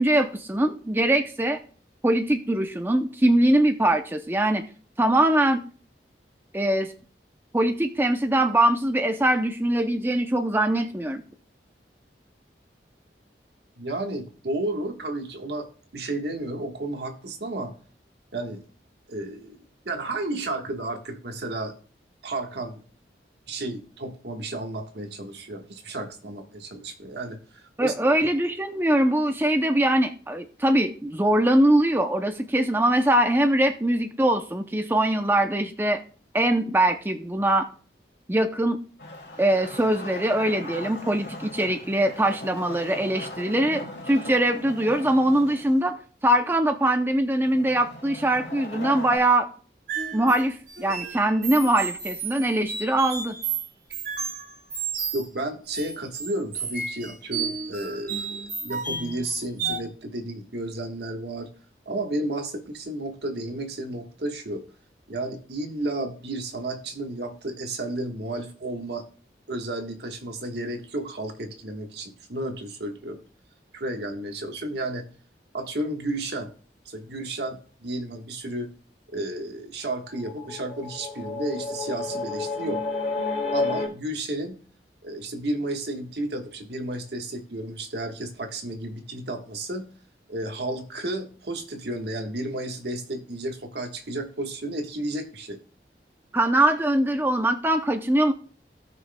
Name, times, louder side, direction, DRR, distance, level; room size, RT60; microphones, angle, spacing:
voice 1, 0.0-1.6 2.0-4.6 5.0-5.6 6.5-6.9 7.5-11.2 27.8-36.0 36.3-37.7 38.3-38.8 39.4-46.0 46.2-49.5 50.1-53.4 96.3-98.3, right 1 dB, 10° right, 6 dB, 0.5 m, -22 dB
voice 2, 13.8-15.7 15.9-17.7 18.3-18.6 19.1-19.6 19.8-21.7 22.2-22.8 23.5-27.9 28.2-28.3 55.1-61.5 61.8-64.6 65.1-69.0 69.5-73.2 73.7-75.1 75.5-76.5 76.8-78.7 79.1-82.8 83.5-84.5 85.0-89.9 90.3-95.6, right 1 dB, 75° right, 4 dB, 1.4 m, -32 dB
Wood, 39.0-45.8 47.4-49.2, left 1 dB, 75° left, 2.6 m, -39 dB
sound 1, 49.9-55.3 55.7-59.8, right 5 dB, 55° right, 2.1 m, -32 dB
sound 2, 80.2-83.9, left 3 dB, 45° left, 2.9 m, -30 dB
16.5 x 6.1 x 2.2 m, 0.41 s
head